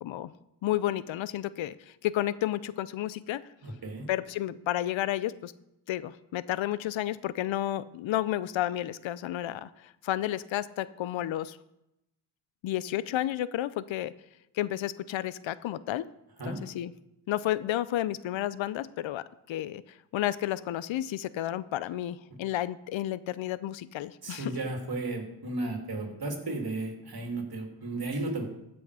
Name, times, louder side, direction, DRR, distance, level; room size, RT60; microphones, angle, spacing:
voice 1, 0.0-0.3 0.6-3.4 4.1-5.5 5.9-11.6 12.6-14.1 14.5-16.1 16.5-16.9 17.3-24.5, left 13 dB, 80° left, 17 dB, 0.6 m, -31 dB
voice 2, 3.6-4.1 16.4-16.6 24.2-28.4, right 2 dB, 50° right, 2 dB, 2.9 m, -34 dB
15.0 x 6.3 x 4.9 m, 0.87 s
cardioid pair, 55°, 46 cm